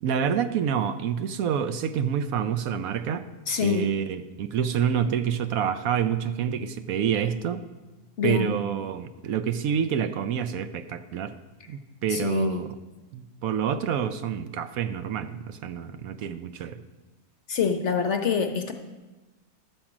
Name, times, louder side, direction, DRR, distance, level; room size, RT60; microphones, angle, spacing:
voice 1, 0.0-3.2 3.6-7.7 8.2-11.4 11.7-12.8 13.1-16.8, right 8 dB, 70° right, 10 dB, 1.0 m, -28 dB
voice 2, 3.5-3.9 8.2-8.5 12.1-12.6 17.5-18.7, left 6 dB, 55° left, 6 dB, 0.9 m, -25 dB
13.0 x 4.9 x 7.3 m, 1.2 s
omnidirectional pair, 1.6 m